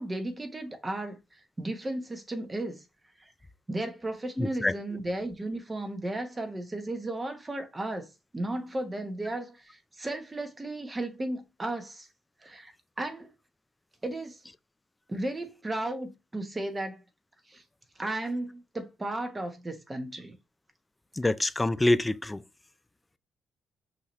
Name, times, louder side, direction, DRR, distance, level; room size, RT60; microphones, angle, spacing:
voice 1, 0.0-2.8 3.7-8.1 8.3-12.1 12.4-13.3 14.0-14.4 15.1-17.0 17.5-17.6 18.0-20.3, right 1 dB, 20° right, 1.0 m, -34 dB
voice 2, 4.4-4.7 21.2-22.4, left 2 dB, 15° left, 0.4 m, -26 dB
5.6 x 2.9 x 3.1 m
cardioid pair, 90°, 0 cm